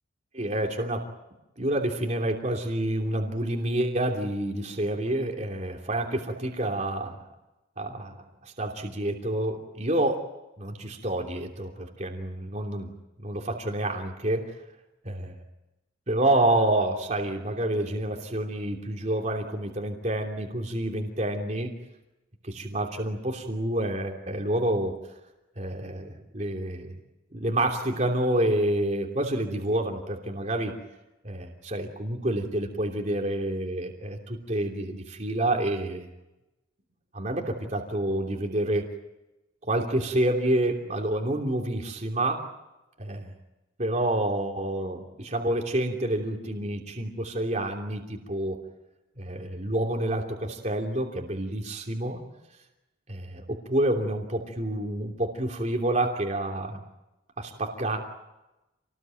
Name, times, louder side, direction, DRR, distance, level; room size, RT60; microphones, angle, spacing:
voice 1, 0.3-1.0 1.6-7.2 7.8-8.1 8.4-10.3 10.6-12.9 13.2-14.5 15.0-15.4 16.1-21.7 22.4-25.0 25.6-27.0 27.3-30.7 31.2-36.1 37.1-38.9 39.7-42.5 43.0-43.3 43.8-48.6 49.2-52.2 53.1-56.8 57.4-58.0, right 1 dB, 40° right, 1 dB, 3.0 m, -28 dB
28.0 x 19.5 x 9.2 m, 0.99 s
head